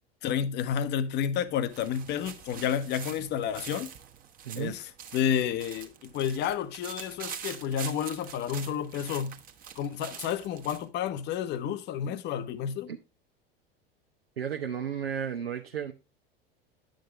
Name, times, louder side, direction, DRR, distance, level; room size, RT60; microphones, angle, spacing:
voice 1, 0.2-3.9 4.6-4.8 5.1-9.4 9.8-12.9, left 9 dB, 35° left, 0.9 m, -30 dB
sound 1, 1.4-10.9, right 8 dB, 30° right, 1.2 m, -44 dB
voice 2, 4.4-4.8 12.9-13.0 14.4-15.9, right 8 dB, 75° right, 0.9 m, -33 dB
10.5 x 6.4 x 3.2 m
figure-of-eight pair, 80°, 30 cm